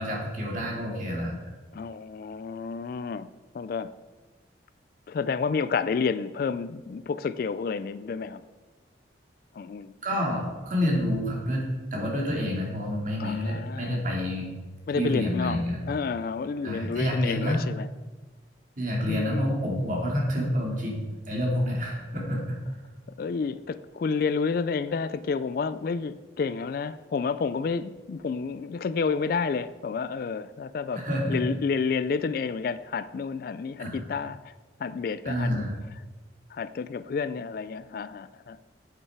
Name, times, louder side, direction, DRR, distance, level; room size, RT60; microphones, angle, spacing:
voice 1, 0.0-1.3 10.0-11.6 11.9-14.5 15.0-15.9 16.6-17.6 18.8-22.6 30.9-31.4 33.8-34.0 35.2-35.7, equal, 45° right, -1 dB, 2.4 m, -28 dB
voice 2, 1.7-3.3 3.5-3.9 5.1-8.4 9.5-9.9 13.2-14.0 14.9-17.9 19.1-19.5 23.2-31.0 31.3-34.5 34.8-35.5 36.5-38.6, left 5 dB, 50° left, 15 dB, 0.3 m, -30 dB
8.7 x 8.2 x 4.7 m, 1.2 s
head